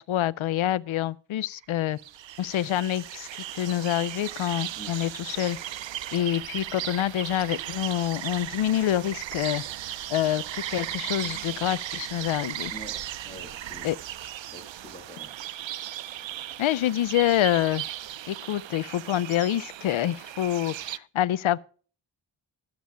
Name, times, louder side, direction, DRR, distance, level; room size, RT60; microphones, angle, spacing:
voice 1, 0.0-2.0 2.4-3.3 3.5-5.6 6.1-9.6 10.1-12.7 13.8-14.0 16.6-17.8 18.3-21.6, left 12 dB, 80° left, 0.5 m, -26 dB
sound 1, 1.5-21.0, right 12 dB, 70° right, 0.6 m, -37 dB
voice 2, 13.2-14.0 14.4-15.3 20.8-20.9, equal, 10° left, 2.8 m, -45 dB
12.5 x 7.0 x 6.2 m
cardioid pair, 65°, 47 cm